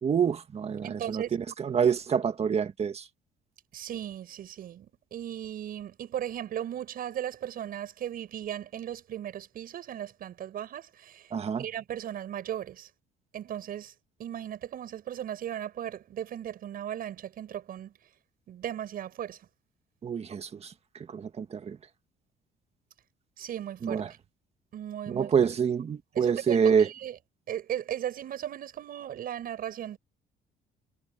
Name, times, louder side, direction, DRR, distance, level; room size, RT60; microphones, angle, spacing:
voice 1, 0.0-3.0 11.3-11.6 20.0-20.7 21.1-21.8 23.8-24.1 25.1-26.9, right 7 dB, 40° right, 1.8 m, -27 dB
voice 2, 0.8-1.4 3.7-11.3 11.6-12.9 13.3-13.9 14.2-17.9 18.5-19.4 23.4-24.0 24.7-25.3 26.2-27.2 27.5-30.0, right 10 dB, 60° right, 7.1 m, -37 dB
cardioid pair, 110°, 17 cm